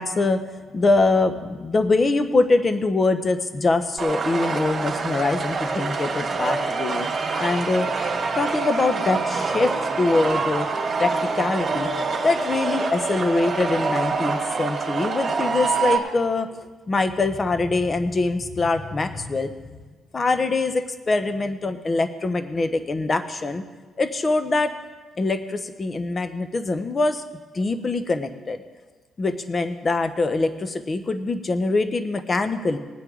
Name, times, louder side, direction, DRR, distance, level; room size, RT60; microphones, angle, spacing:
voice 1, 0.0-7.1 7.4-7.9 8.4-9.7 10.0-10.7 11.0-11.9 12.2-19.5 20.1-23.6 24.0-24.7 25.2-27.2 27.5-28.6 29.2-32.8, left 3 dB, 35° left, 9 dB, 1.0 m, -23 dB
sound 1, 4.0-16.0, right 4 dB, 40° right, 2.5 m, -26 dB
19.5 x 9.1 x 3.9 m, 1.3 s
cardioid pair, 90°, 0 cm